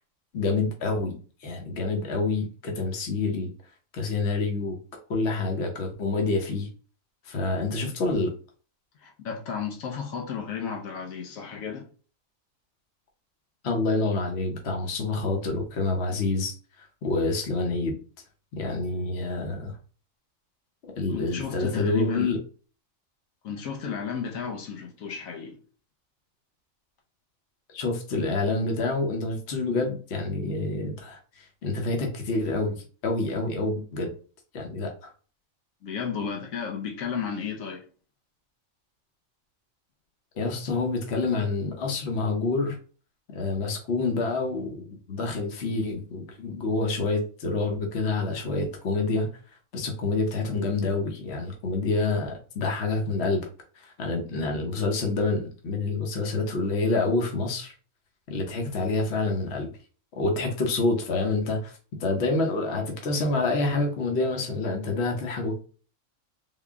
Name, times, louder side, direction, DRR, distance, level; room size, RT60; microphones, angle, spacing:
voice 1, 0.3-3.5 3.9-4.8 5.1-6.7 7.2-8.3 13.6-16.5 17.0-18.0 18.5-19.8 21.0-22.4 27.7-34.1 34.5-35.1 40.4-42.8 43.3-49.3 49.7-53.5 53.7-57.7 58.3-59.7 60.2-61.7 62.0-65.5, left 3 dB, 55° left, 1.1 m, -27 dB
voice 2, 9.0-11.8 21.1-22.3 23.4-25.6 35.8-37.8, left 6 dB, 80° left, 1.2 m, -33 dB
3.7 x 2.2 x 3.5 m
omnidirectional pair, 1.4 m